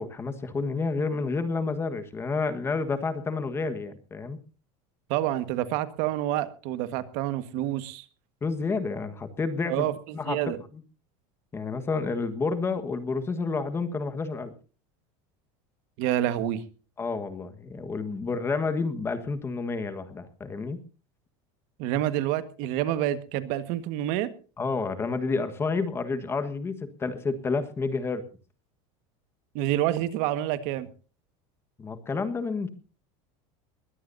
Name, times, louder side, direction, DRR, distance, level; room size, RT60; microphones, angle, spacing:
voice 1, 0.0-4.4 8.4-9.8 10.1-10.4 11.5-14.5 17.0-20.8 24.6-28.2 31.8-32.7, left 4 dB, 15° left, 10 dB, 1.4 m, -30 dB
voice 2, 5.1-8.0 9.7-10.6 16.0-16.6 21.8-24.3 29.5-30.9, right 13 dB, 55° right, 12 dB, 1.6 m, -28 dB
21.5 x 16.5 x 2.7 m, 0.37 s
cardioid pair, 160°, 15 cm